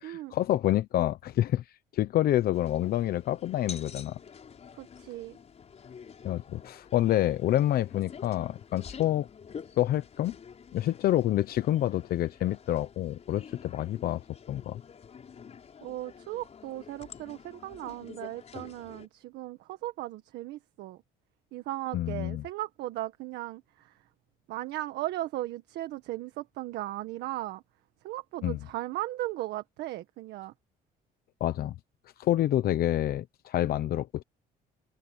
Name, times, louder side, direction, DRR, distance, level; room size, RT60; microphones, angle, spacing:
voice 1, 0.0-1.6 1.9-4.2 6.2-9.3 9.8-10.4 10.7-14.8 21.9-22.4 28.4-28.6 31.4-31.7 32.2-34.2, left 13 dB, 65° left, 1.0 m, -28 dB
sound 1, 2.5-19.1, left 6 dB, 40° left, 5.3 m, -48 dB
voice 2, 4.8-5.4 15.8-21.0 21.5-23.9 24.5-27.6 28.0-30.5, right 15 dB, 85° right, 1.7 m, -37 dB
cardioid pair, 110°, 17 cm